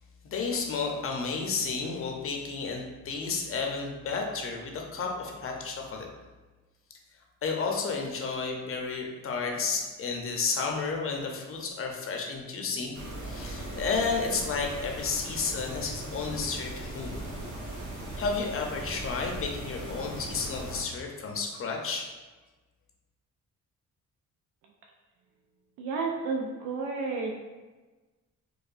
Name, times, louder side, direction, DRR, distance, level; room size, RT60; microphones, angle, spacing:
voice 1, 0.2-6.1 7.4-12.9 13.2-17.2 18.2-22.0, left 4 dB, 45° left, 1 dB, 0.7 m, -32 dB
sound 1, 12.9-20.8, right 1 dB, 70° right, 1.3 m, -39 dB
voice 2, 25.8-27.4, right 4 dB, 85° right, 0 dB, 0.5 m, -31 dB
4.7 x 2.1 x 2.5 m, 1.2 s
cardioid pair, 90°, 30 cm